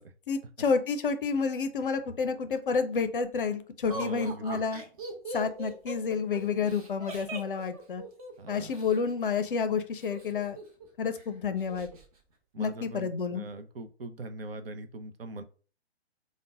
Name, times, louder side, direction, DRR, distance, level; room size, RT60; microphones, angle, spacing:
voice 1, 0.3-4.8 5.3-8.0 8.5-10.6 11.0-11.9 12.6-13.4, left 5 dB, 55° left, 9 dB, 0.5 m, -30 dB
Laughter, 3.9-9.0 10.0-10.9 11.2-11.3 11.6-12.1, right 2 dB, 35° right, 0.8 m, -40 dB
voice 2, 3.9-4.6 8.4-8.7 12.5-15.4, right 2 dB, 60° right, 9 dB, 0.6 m, -41 dB
5.0 x 2.1 x 2.4 m, 0.39 s
figure-of-eight pair, 130°, 33 cm